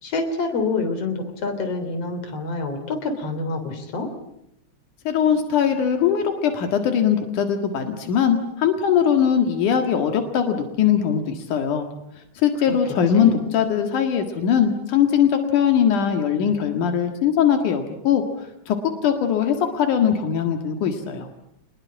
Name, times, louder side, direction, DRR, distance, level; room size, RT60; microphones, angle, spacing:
voice 1, 0.0-4.1 12.7-12.8 13.1-13.4, left 3 dB, 50° left, 6 dB, 4.5 m, -27 dB
voice 2, 5.0-11.9 12.4-18.2 18.7-18.8 19.0-21.3, left 8 dB, 85° left, 5 dB, 3.3 m, -21 dB
26.0 x 21.0 x 8.7 m, 0.79 s
omnidirectional pair, 3.5 m